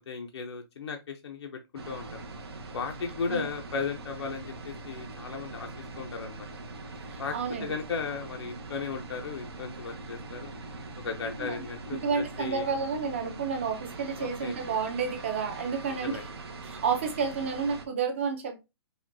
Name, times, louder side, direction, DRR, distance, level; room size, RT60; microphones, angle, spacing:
voice 1, 0.1-2.2 2.7-6.5 7.2-7.3 7.6-10.5 11.0-12.7 14.2-14.6 15.9-16.3, left 5 dB, 80° left, 0.6 m, -36 dB
sound 1, 1.8-17.8, right 3 dB, 70° right, 0.9 m, -42 dB
voice 2, 7.1-7.8 11.4-11.6 11.9-16.2 16.6-18.6, right 5 dB, 30° right, 0.6 m, -30 dB
5.0 x 2.3 x 2.6 m
hypercardioid pair, 180°, 14 cm